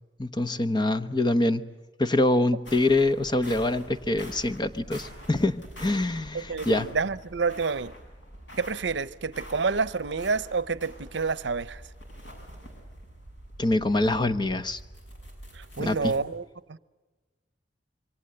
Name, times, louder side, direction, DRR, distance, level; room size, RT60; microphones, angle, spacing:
voice 1, 0.2-1.6 2.0-6.9 13.6-14.8 15.8-16.1, left 2 dB, 25° left, 0.9 m, -25 dB
sound 1, 2.6-16.2, equal, 90° left, 7.2 m, -45 dB
voice 2, 6.3-7.9 8.6-11.8 15.5-16.8, right 4 dB, 70° right, 0.7 m, -29 dB
27.0 x 24.0 x 7.8 m
head